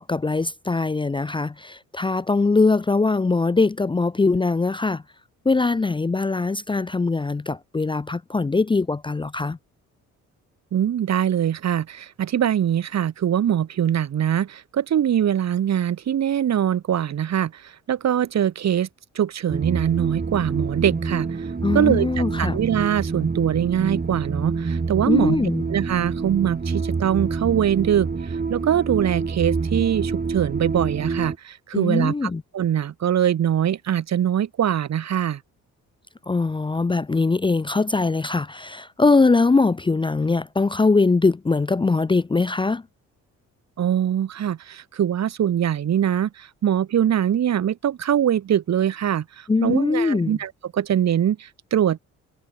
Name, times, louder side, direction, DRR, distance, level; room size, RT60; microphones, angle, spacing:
voice 1, 0.0-5.0 5.4-9.6 21.6-22.6 25.1-25.6 31.7-32.4 36.3-42.8 49.5-50.4, left 3 dB, 15° left, 0.6 m, -21 dB
voice 2, 10.7-17.5 17.9-18.9 19.2-21.3 21.7-25.4 25.7-28.1 28.5-35.4 43.8-52.0, right 10 dB, 60° right, 3.5 m, -22 dB
sound 1, 19.5-31.4, right 4 dB, 30° right, 5.5 m, -27 dB
cardioid pair, 90°, 30 cm